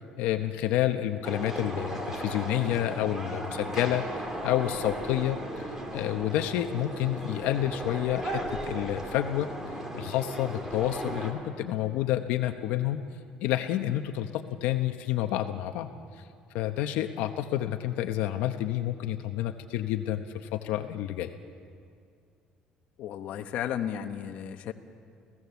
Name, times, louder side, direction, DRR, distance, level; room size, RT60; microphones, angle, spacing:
voice 1, 0.2-4.0 4.4-5.6 5.9-9.5 9.9-13.0 13.4-15.9 16.2-16.3 16.5-21.3, left 13 dB, 90° left, 7 dB, 0.9 m, -29 dB
sound 1, 1.2-11.3, right 1 dB, 15° right, 2.6 m, -36 dB
voice 2, 23.0-24.7, left 9 dB, 55° left, 6 dB, 1.1 m, -34 dB
29.5 x 16.0 x 7.0 m, 2.3 s
cardioid pair, 170°, 3 cm